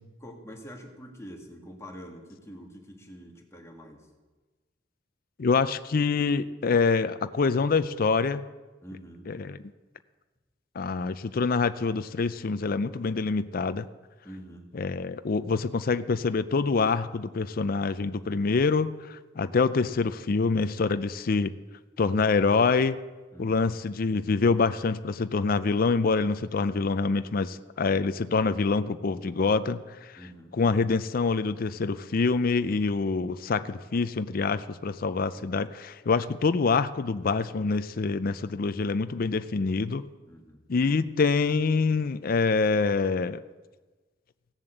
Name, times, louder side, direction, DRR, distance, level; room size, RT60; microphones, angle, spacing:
voice 1, 0.2-4.1 8.8-9.3 14.2-14.7 23.3-23.6 30.2-30.6 40.3-40.6, equal, 15° left, 1 dB, 2.0 m, -45 dB
voice 2, 5.4-8.4 9.3-9.6 10.8-13.9 14.7-21.5 22.0-23.0 23.4-30.2 30.6-40.0 40.7-43.4, left 4 dB, 50° left, 12 dB, 0.5 m, -26 dB
16.5 x 7.3 x 7.9 m, 1.3 s
head